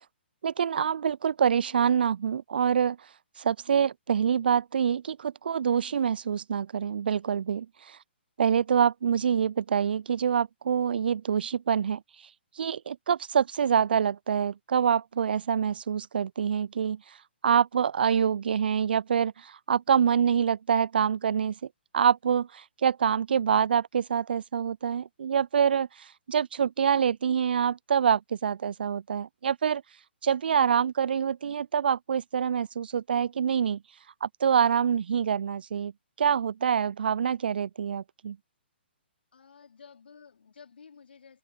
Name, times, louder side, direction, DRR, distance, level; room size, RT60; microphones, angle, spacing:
voice 1, 0.4-3.0 3.4-8.0 8.4-12.0 12.6-17.0 17.4-21.5 21.9-29.8 30.2-33.8 34.2-35.9 36.2-38.4, right 7 dB, 60° right, 0.4 m, -26 dB
voice 2, 39.3-41.4, left 6 dB, 65° left, 4.2 m, -52 dB
open air
figure-of-eight pair, 130°, 6 cm